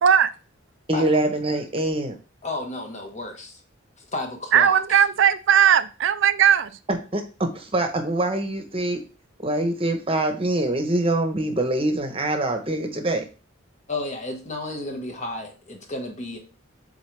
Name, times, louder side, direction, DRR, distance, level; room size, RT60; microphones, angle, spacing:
voice 1, 0.0-0.3 4.5-6.7, right 8 dB, 65° right, 0.4 m, -18 dB
voice 2, 0.9-2.2 6.9-9.0 9.4-13.2, right 1 dB, 30° right, 1.0 m, -24 dB
voice 3, 2.4-3.6 4.0-5.0 13.9-16.4, left 2 dB, 35° left, 1.4 m, -32 dB
8.0 x 4.0 x 3.3 m
head